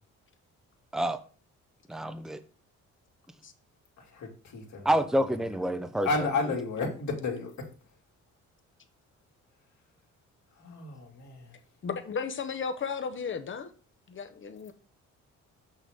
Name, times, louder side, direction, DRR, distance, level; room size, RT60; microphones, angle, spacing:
voice 1, 1.9-2.4 4.8-6.1, right 1 dB, ahead, 0.7 m, -27 dB
voice 2, 4.0-5.2 6.0-7.5 10.6-11.5, left 3 dB, 65° left, 2.6 m, -32 dB
voice 3, 11.8-13.7 14.1-14.7, left 5 dB, 40° left, 1.1 m, -34 dB
6.7 x 6.0 x 3.6 m
cardioid pair, 90°, 30 cm